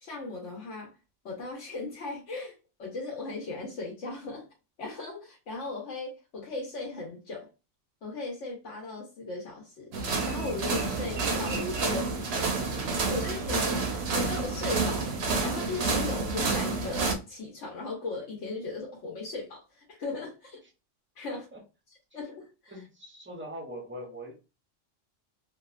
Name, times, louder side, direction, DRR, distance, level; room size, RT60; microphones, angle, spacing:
voice 1, 0.0-0.9 1.2-4.5 4.8-7.5 8.0-10.0 10.2-12.6 13.1-13.9 14.1-15.1 15.4-20.6 21.2-21.4 22.1-22.7, left 3 dB, 70° left, 1.1 m, -37 dB
sound 1, 9.9-17.1, right 3 dB, 65° right, 0.8 m, -29 dB
voice 2, 21.3-21.6 22.7-24.4, equal, 20° right, 0.4 m, -42 dB
2.8 x 2.1 x 2.3 m
omnidirectional pair, 1.3 m